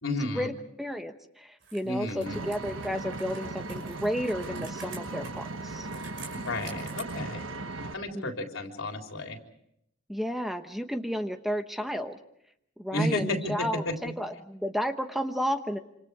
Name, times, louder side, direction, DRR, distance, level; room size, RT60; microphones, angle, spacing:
voice 1, 0.0-0.5 1.8-2.4 6.3-7.5 7.9-9.4 12.9-14.0, left 1 dB, 85° left, 2 dB, 3.6 m, -32 dB
voice 2, 0.8-5.9 8.1-8.3 10.1-12.2 12.8-15.8, equal, ahead, 6 dB, 1.0 m, -32 dB
Computer keyboard, 1.6-7.0, right 5 dB, 60° right, 5.7 m, -48 dB
Vehicle, 2.3-7.9, right 2 dB, 80° right, 1.2 m, -37 dB
27.0 x 26.5 x 4.9 m, 0.75 s
head